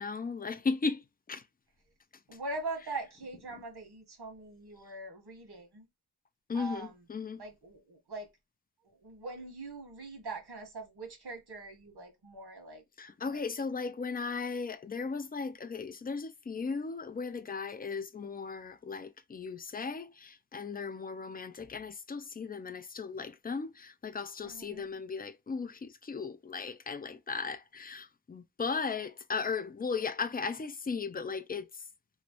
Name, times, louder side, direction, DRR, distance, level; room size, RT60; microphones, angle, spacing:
voice 1, 0.0-1.4 2.9-3.0 6.5-7.4 13.0-31.7, left 4 dB, 25° left, 0.3 m, -36 dB
voice 2, 2.3-5.8 6.5-7.0 7.4-8.3 8.8-12.8 13.3-13.4 24.4-24.8, right 3 dB, 75° right, 1.4 m, -42 dB
3.0 x 2.5 x 2.9 m
wide cardioid pair, 100°, 39 cm